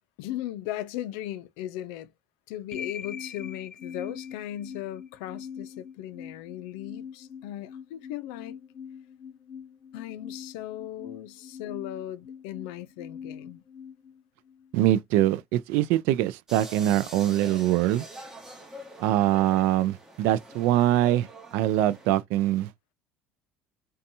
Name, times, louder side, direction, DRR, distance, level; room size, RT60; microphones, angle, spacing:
voice 1, 0.2-2.1 2.5-8.6 9.9-13.6, left 13 dB, 85° left, 0.4 m, -37 dB
sound 1, 2.7-14.8, left 7 dB, 25° left, 0.4 m, -43 dB
voice 2, 14.7-18.1 19.0-22.7, right 13 dB, 75° right, 0.3 m, -23 dB
sound 2, 16.5-22.1, right 1 dB, 15° right, 1.0 m, -44 dB
2.6 x 2.3 x 2.6 m
cardioid pair, 120°, 4 cm